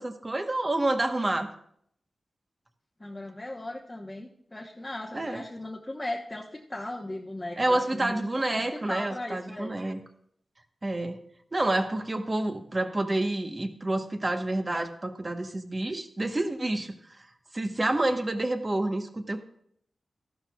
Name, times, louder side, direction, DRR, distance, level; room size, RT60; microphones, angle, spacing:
voice 1, 0.0-1.5 5.1-5.4 7.6-10.0 10.8-11.2 11.5-16.9 17.5-19.4, right 2 dB, 35° right, 6 dB, 1.1 m, -28 dB
voice 2, 3.0-8.2 8.5-9.8, left 1 dB, 20° left, -1 dB, 1.1 m, -37 dB
14.0 x 12.0 x 2.3 m, 0.68 s
wide cardioid pair, 75°, 0 cm